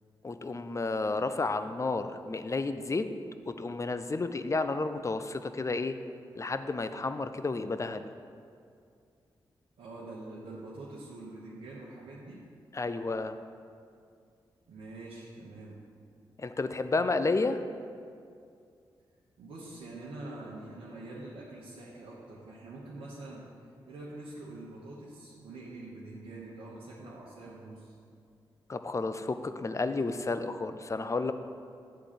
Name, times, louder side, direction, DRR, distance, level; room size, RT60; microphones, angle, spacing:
voice 1, 0.2-3.0 3.5-6.0 6.4-8.0 12.7-13.4 16.4-17.6 28.7-31.3, left 3 dB, 30° left, 10 dB, 0.5 m, -31 dB
voice 2, 9.8-12.4 14.7-15.8 19.4-23.4 23.8-28.0, right 2 dB, 85° right, -7 dB, 1.1 m, -45 dB
8.3 x 3.8 x 6.8 m, 2.3 s
cardioid pair, 50°, 10 cm